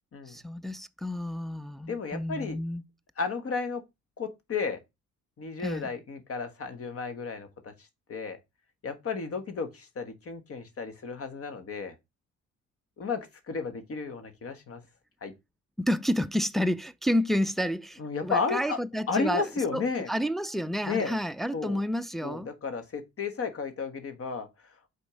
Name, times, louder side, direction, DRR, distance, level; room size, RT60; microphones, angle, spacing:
voice 1, 0.3-2.8 5.6-5.9 15.8-19.5 19.7-19.8 20.1-22.5, equal, ahead, 0.4 m, -30 dB
voice 2, 1.9-2.6 3.2-3.8 4.2-4.8 5.4-7.7 8.1-8.4 8.8-11.9 13.0-14.8 15.2-15.3 18.0-18.8 19.1-20.1 20.8-21.1 21.5-21.8 22.2-24.5, left 4 dB, 50° left, 1.4 m, -33 dB
5.3 x 4.2 x 5.0 m
cardioid pair, 90°, 30 cm